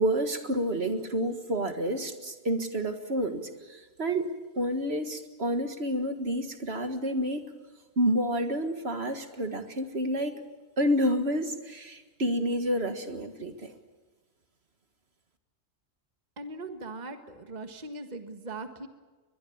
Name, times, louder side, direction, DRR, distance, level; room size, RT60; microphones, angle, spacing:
voice 1, 0.0-7.5 8.0-10.4 10.8-13.7, equal, 50° right, 7 dB, 1.9 m, -29 dB
voice 2, 16.4-18.9, right 2 dB, 35° right, 7 dB, 1.6 m, -40 dB
22.5 x 22.0 x 8.6 m, 1.3 s
omnidirectional pair, 1.4 m